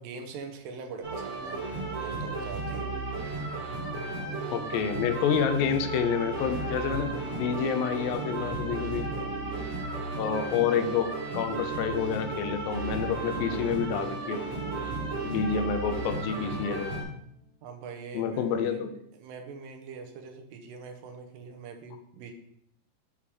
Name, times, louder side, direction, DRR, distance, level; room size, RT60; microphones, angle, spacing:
voice 1, 0.0-1.6 2.0-2.8 17.6-22.3, right 4 dB, 85° right, 4 dB, 2.5 m, -43 dB
sound 1, 1.0-17.0, right 3 dB, 45° right, 4.2 m, -34 dB
voice 2, 4.5-9.1 10.2-14.4 15.2-17.0 18.1-18.9, left 7 dB, 85° left, 9 dB, 2.4 m, -28 dB
sound 2, 5.9-17.4, right 2 dB, 5° right, 1.5 m, -45 dB
8.4 x 4.9 x 3.5 m, 0.72 s
omnidirectional pair, 4.0 m